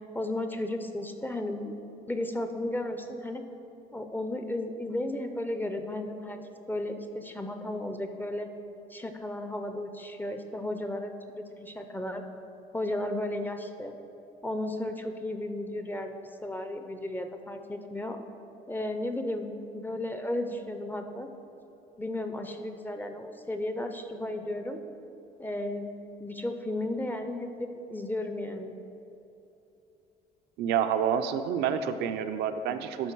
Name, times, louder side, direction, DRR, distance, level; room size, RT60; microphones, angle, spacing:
voice 1, 0.1-1.8 2.1-3.4 3.9-6.4 6.7-8.5 8.9-12.2 12.7-14.0 14.4-18.2 18.7-21.3 22.0-24.8 25.4-28.8, left 1 dB, 10° left, 6 dB, 0.4 m, -34 dB
voice 2, 30.6-33.1, right 8 dB, 80° right, 9 dB, 0.5 m, -28 dB
11.5 x 3.8 x 4.6 m, 2.9 s
cardioid pair, 110°, 17 cm